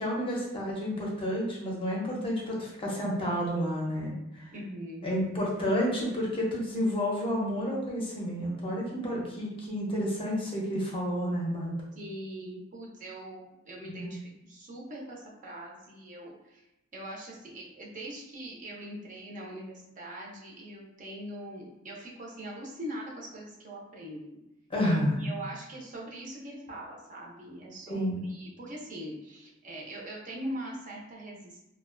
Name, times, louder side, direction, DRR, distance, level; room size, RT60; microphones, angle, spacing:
voice 1, 0.0-4.5 5.0-11.8 13.9-14.2 24.7-25.2 27.9-28.2, equal, 25° left, -3 dB, 0.6 m, -30 dB
voice 2, 4.5-5.1 12.0-16.6 16.9-24.4 25.1-31.6, right 1 dB, 40° right, -3 dB, 0.5 m, -42 dB
2.4 x 2.1 x 2.4 m, 0.88 s
head